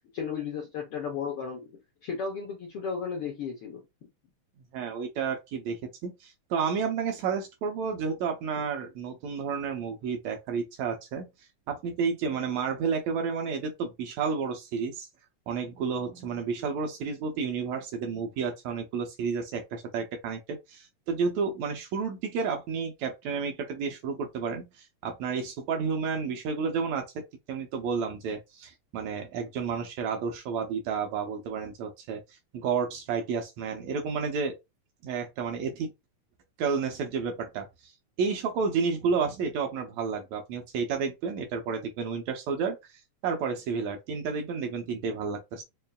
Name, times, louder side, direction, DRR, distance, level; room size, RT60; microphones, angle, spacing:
voice 1, 0.1-1.7 2.0-3.8, left 6 dB, 70° left, 1.3 m, -34 dB
voice 2, 4.7-11.3 11.7-15.1 15.5-27.1 27.5-32.2 32.5-34.6 35.0-35.9 36.6-37.7 38.2-42.8 43.2-45.6, right 5 dB, 75° right, 1.8 m, -31 dB
5.4 x 2.5 x 2.2 m
omnidirectional pair, 3.5 m